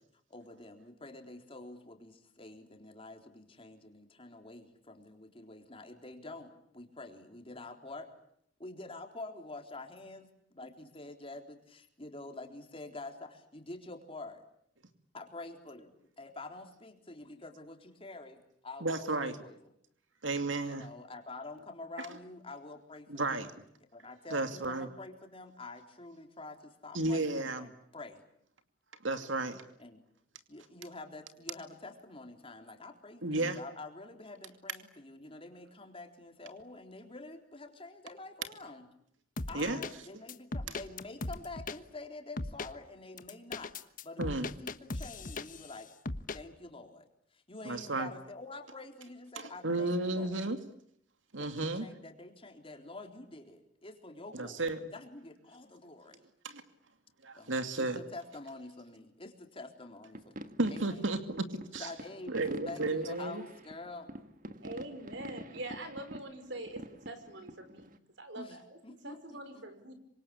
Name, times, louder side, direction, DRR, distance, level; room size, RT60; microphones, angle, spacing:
voice 1, 0.3-8.1 8.6-14.4 15.1-19.7 20.6-23.4 23.9-28.2 29.8-30.0 30.5-38.8 39.5-45.9 46.3-50.5 51.4-54.6 54.9-56.2 57.3-61.1 61.7-64.1 68.4-68.6 68.8-69.6, left 2 dB, 30° left, 4 dB, 3.8 m, -47 dB
voice 2, 18.8-19.4 20.2-20.8 23.1-23.5 24.3-24.9 26.9-27.7 29.0-29.6 33.2-33.6 39.5-39.8 44.2-44.5 47.6-48.1 49.4-50.6 51.3-51.9 54.3-54.8 56.4-56.6 57.2-58.0 60.6-61.9 62.3-63.4, right 2 dB, 85° right, 8 dB, 2.5 m, -33 dB
sound 1, 39.4-39.9 40.3-41.8 42.4-42.7 43.2-45.7 46.1-46.4, left 2 dB, 45° left, 1.3 m, -38 dB
sound 2, 60.1-68.0, right 1 dB, 45° right, 1.7 m, -47 dB
voice 3, 64.6-68.8 69.0-69.9, right 1 dB, 65° right, 9 dB, 5.3 m, -44 dB
27.0 x 25.5 x 8.6 m, 0.70 s
head